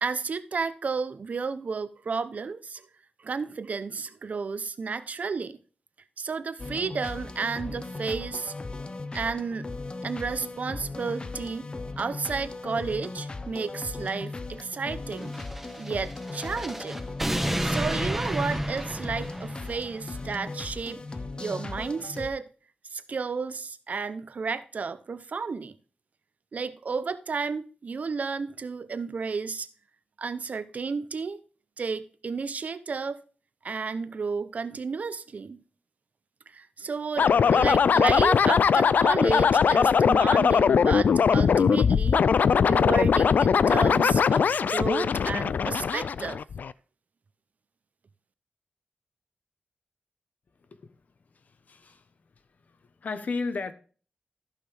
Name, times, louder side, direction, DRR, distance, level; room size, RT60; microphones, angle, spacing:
voice 1, 0.0-2.9 3.2-5.6 6.2-8.5 9.1-9.7 10.0-11.7 12.0-15.3 15.8-17.1 17.6-21.0 21.4-22.5 22.9-25.7 26.5-29.7 30.2-31.4 31.8-33.2 33.6-35.6 36.5-42.2 42.6-46.4, right 5 dB, 60° right, 0.7 m, -32 dB
sound 1, 6.6-22.3, left 3 dB, 35° left, 0.7 m, -38 dB
sound 2, 15.2-20.0, right 1 dB, 10° right, 0.7 m, -31 dB
sound 3, 37.2-46.7, left 6 dB, 80° left, 0.3 m, -21 dB
voice 2, 51.3-52.1 52.7-53.7, left 4 dB, 60° left, 0.9 m, -34 dB
14.5 x 5.9 x 3.4 m
wide cardioid pair, 120°, 3 cm